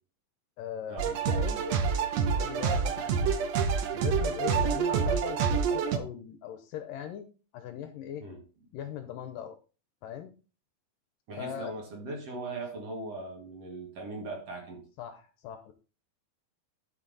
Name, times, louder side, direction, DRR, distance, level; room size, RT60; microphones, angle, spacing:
voice 1, 0.6-1.7 2.3-3.4 3.9-7.3 7.5-8.3 8.7-9.6 10.0-10.4 11.4-11.7 15.0-15.7, left 10 dB, 75° left, 9 dB, 2.2 m, -39 dB
sound 1, 1.0-6.0, right 6 dB, 75° right, 1.5 m, -27 dB
voice 2, 11.3-14.8, right 2 dB, 45° right, 1 dB, 2.7 m, -39 dB
12.5 x 5.8 x 4.0 m, 0.35 s
omnidirectional pair, 4.4 m